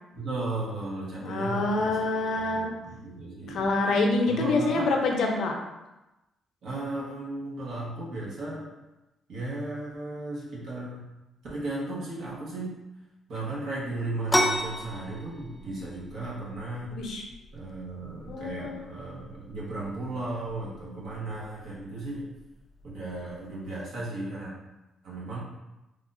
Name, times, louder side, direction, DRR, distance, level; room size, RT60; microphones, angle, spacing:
voice 1, 0.1-2.0 2.3-3.7 4.3-4.9 6.6-8.7 9.3-11.1 11.5-12.8 13.3-16.9 17.5-22.3 22.8-24.5 25.0-25.4, right 2 dB, 70° right, -6 dB, 1.2 m, -35 dB
voice 2, 1.2-2.7 3.5-5.5 16.9-17.2 18.3-18.9, left 3 dB, 70° left, 2 dB, 0.6 m, -26 dB
sound 1, 14.3-23.7, equal, 15° left, 0.4 m, -35 dB
3.5 x 2.3 x 2.6 m, 1.0 s
cardioid pair, 90°, 0 cm